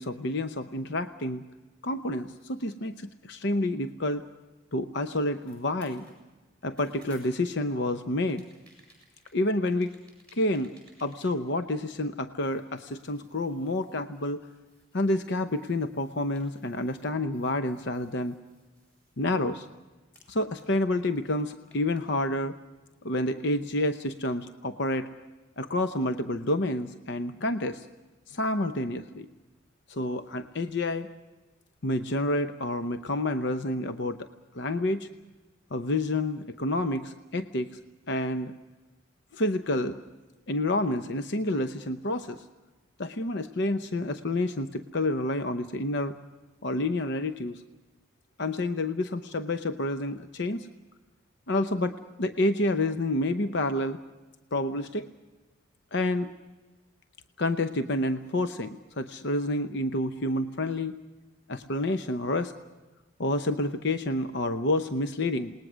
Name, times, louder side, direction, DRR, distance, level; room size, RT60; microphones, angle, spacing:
voice 1, 0.0-1.4 1.8-4.2 4.7-6.1 6.6-8.5 9.3-9.9 10.3-10.7 11.0-14.4 14.9-18.3 19.2-19.7 20.3-22.5 23.0-25.1 25.6-27.9 28.3-29.3 29.9-31.1 31.8-34.2 34.5-35.1 35.7-37.7 38.1-38.5 39.3-40.0 40.5-42.4 43.0-46.2 46.6-47.6 48.4-50.7 51.5-54.0 54.5-55.1 55.9-56.3 57.4-61.0 61.5-62.5 63.2-65.5, left 1 dB, 55° left, 9 dB, 0.8 m, -29 dB
sound 1, 5.2-7.7 8.2-12.1 12.4-19.8 20.1-22.1, right 1 dB, 5° left, 7.5 m, -60 dB
28.0 x 20.0 x 6.2 m, 1.2 s
head